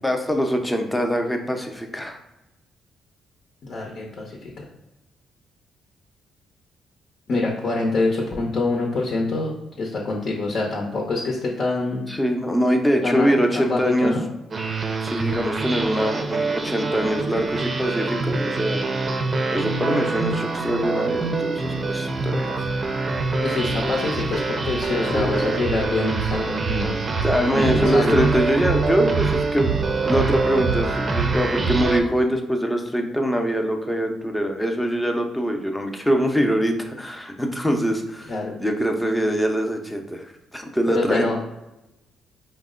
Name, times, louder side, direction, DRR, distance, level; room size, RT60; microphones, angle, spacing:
voice 1, 0.0-2.2 12.1-14.1 15.0-18.8 19.5-22.6 25.1-25.8 27.2-29.8 30.0-41.3, equal, 10° left, 3 dB, 0.6 m, -23 dB
voice 2, 3.7-4.5 7.3-12.1 13.0-14.3 23.4-27.0 27.5-28.2 38.3-38.5 40.9-41.3, left 3 dB, 55° left, -2 dB, 0.8 m, -25 dB
sound 1, 14.5-32.0, right 4 dB, 35° right, 0.5 m, -25 dB
4.6 x 2.1 x 3.7 m, 0.93 s
cardioid pair, 90°, 0 cm